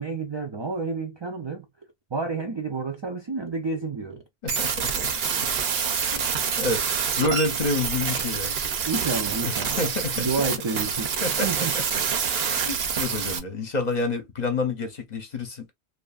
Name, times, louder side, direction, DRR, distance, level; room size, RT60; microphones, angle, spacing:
voice 1, 0.0-1.7 2.1-4.2 8.9-9.9 10.2-11.1 11.4-11.8, right 4 dB, 45° right, 0.3 m, -29 dB
voice 2, 4.4-5.1 5.4-5.5 5.9-6.8 7.2-8.6 9.4-10.3 11.2-11.7 12.4-15.7, left 3 dB, 45° left, 0.7 m, -29 dB
sound 1, 4.5-13.4, right 7 dB, 70° right, 0.8 m, -27 dB
2.7 x 2.4 x 2.3 m
omnidirectional pair, 1.1 m